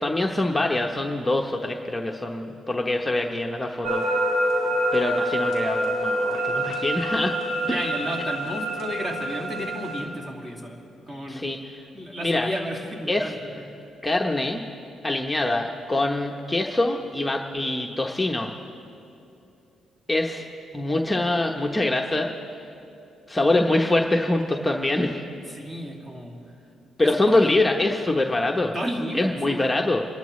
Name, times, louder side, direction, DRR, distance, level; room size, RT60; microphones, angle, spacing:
voice 1, 0.0-4.1 4.9-7.4 7.7-7.8 11.3-11.6 12.2-12.5 13.1-13.3 14.0-14.6 15.0-18.5 20.1-20.4 20.7-22.3 23.3-25.2 27.0-28.7 29.1-30.1, left 2 dB, 10° left, 1 dB, 0.9 m, -24 dB
sound 1, 3.8-10.0, right 1 dB, 70° right, 3.6 m, -26 dB
voice 2, 7.6-10.8 11.1-11.5 11.9-13.6 25.5-26.4 27.0-27.5 28.7-29.6, equal, 25° right, 0 dB, 2.4 m, -32 dB
27.5 x 12.0 x 3.2 m, 2.8 s
cardioid pair, 90°, 0 cm